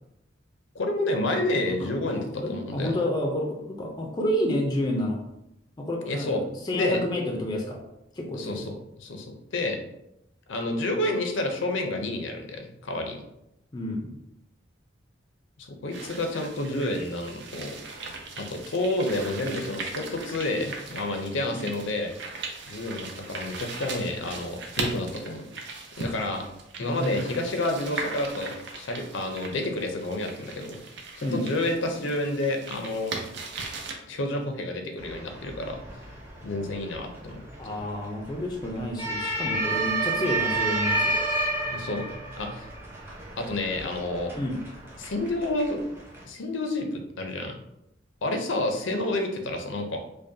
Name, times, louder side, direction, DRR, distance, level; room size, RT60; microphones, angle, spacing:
voice 1, 0.7-3.0 6.1-6.4 6.7-7.0 8.3-9.8 10.5-13.2 15.6-17.7 18.4-22.1 22.7-25.5 26.0-26.5 26.8-30.8 31.2-33.2 34.1-35.8 36.4-37.9 41.7-42.0 42.4-42.7 43.4-44.3 45.0-45.8 46.3-47.6 48.2-50.0, left 2 dB, 75° left, 4 dB, 0.6 m, -29 dB
voice 2, 2.1-5.2 5.8-7.8 8.1-8.6 13.7-14.2 21.5-21.7 26.8-27.2 31.2-31.4 37.6-41.1 44.4-44.6, left 1 dB, 20° left, 1 dB, 0.4 m, -30 dB
sound 1, 15.9-33.9, right 3 dB, 60° right, 0.6 m, -39 dB
sound 2, 35.0-46.2, right 2 dB, 10° right, 0.7 m, -31 dB
5.0 x 2.2 x 2.6 m, 0.84 s
head